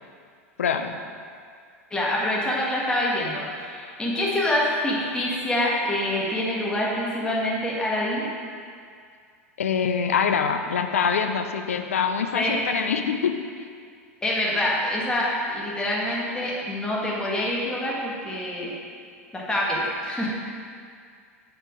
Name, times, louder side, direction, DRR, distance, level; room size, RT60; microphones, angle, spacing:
voice 1, 0.6-0.9 9.6-13.3, left 6 dB, 70° left, 6 dB, 0.6 m, -24 dB
voice 2, 1.9-8.3 12.3-12.6 14.2-18.7 19.3-20.3, left 1 dB, 10° left, -5 dB, 1.8 m, -26 dB
9.8 x 4.7 x 5.1 m, 2.2 s
figure-of-eight pair, 85°, 8 cm